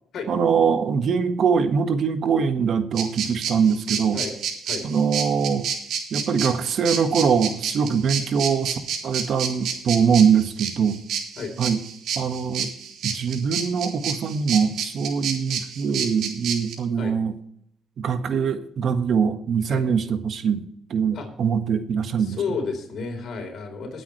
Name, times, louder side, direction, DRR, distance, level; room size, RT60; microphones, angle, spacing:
voice 1, 0.3-4.2 4.8-5.7 6.1-11.0 11.6-11.8 12.1-12.7 13.0-17.4 18.0-22.4, right 6 dB, 60° right, 8 dB, 1.5 m, -23 dB
sound 1, 3.0-16.7, right 7 dB, 80° right, 3.1 m, -29 dB
voice 2, 22.2-24.0, left 5 dB, 65° left, 5 dB, 4.0 m, -31 dB
20.0 x 8.8 x 3.3 m, 0.69 s
cardioid pair, 90°, 0 cm